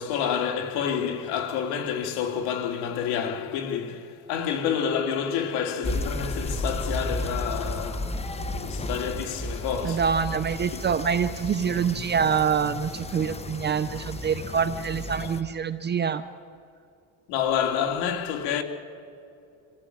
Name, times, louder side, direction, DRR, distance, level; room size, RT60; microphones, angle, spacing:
voice 1, 0.0-10.1 10.7-10.8 15.2-15.3 17.3-18.6, left 8 dB, 80° left, 2.8 m, -29 dB
sound 1, 5.8-15.4, left 1 dB, 15° left, 1.2 m, -33 dB
voice 2, 9.8-16.2, right 7 dB, 25° right, 0.7 m, -26 dB
27.5 x 16.0 x 10.0 m
cardioid pair, 135°, 38 cm